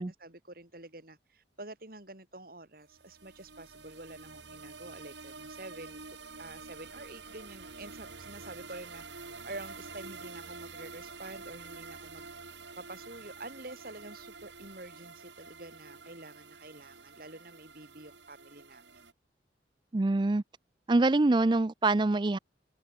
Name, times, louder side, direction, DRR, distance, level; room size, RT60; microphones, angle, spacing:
voice 1, 0.0-6.0 6.4-12.3 12.8-19.1, right 2 dB, 55° right, 5.4 m, -48 dB
sound 1, 2.9-19.1, right 4 dB, 90° right, 7.7 m, -48 dB
voice 2, 19.9-20.4 20.9-22.4, right 2 dB, 25° right, 0.4 m, -25 dB
head